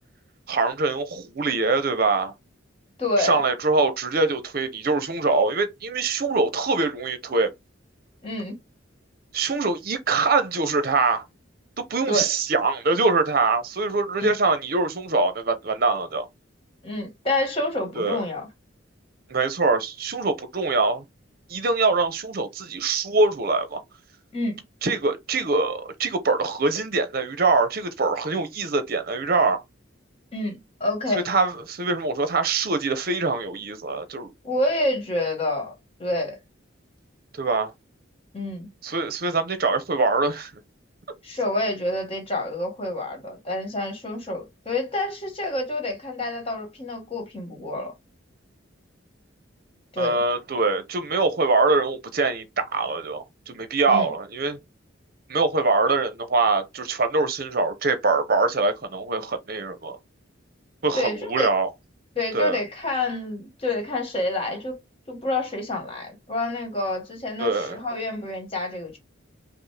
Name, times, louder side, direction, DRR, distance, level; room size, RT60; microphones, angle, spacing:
voice 1, 0.5-2.3 3.2-7.5 9.3-11.2 11.9-16.3 17.9-18.2 19.3-21.0 21.5-23.8 24.8-29.6 31.1-34.3 37.4-37.7 38.8-40.5 50.0-54.6 55.3-59.9 60.8-61.7 62.3-62.6 67.4-67.8, right 3 dB, 50° right, 0.7 m, -23 dB
voice 2, 3.0-3.4 8.2-8.6 12.1-12.3 14.2-14.3 16.8-18.5 24.3-24.6 30.3-31.2 34.4-35.7 36.0-36.4 38.3-38.7 41.2-47.9 49.9-50.2 53.9-54.1 60.9-61.5 62.1-64.8 65.1-69.0, left 2 dB, 30° left, 1.4 m, -28 dB
5.1 x 2.1 x 3.3 m
head